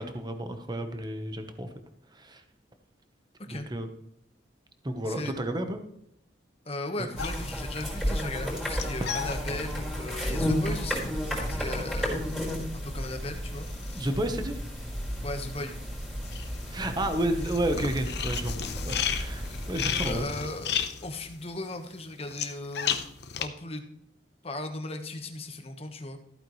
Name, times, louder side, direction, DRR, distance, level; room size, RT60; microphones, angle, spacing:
voice 1, 0.0-1.7 2.1-2.4 3.5-3.9 4.8-5.8 7.0-7.1 13.9-14.6 16.7-18.5 18.8-20.2, right 1 dB, 25° right, 7 dB, 1.1 m, -31 dB
voice 2, 5.0-5.3 6.6-11.1 11.5-12.2 12.8-14.1 15.2-15.8 19.9-23.1 23.4-23.8 24.4-26.2, left 2 dB, 35° left, 5 dB, 1.3 m, -37 dB
sound 1, 7.2-14.7 14.9-23.5, left 7 dB, 65° left, 1.0 m, -35 dB
sound 2, 7.2-20.2, equal, ahead, 5.1 m, -33 dB
14.5 x 8.9 x 3.2 m, 0.75 s
head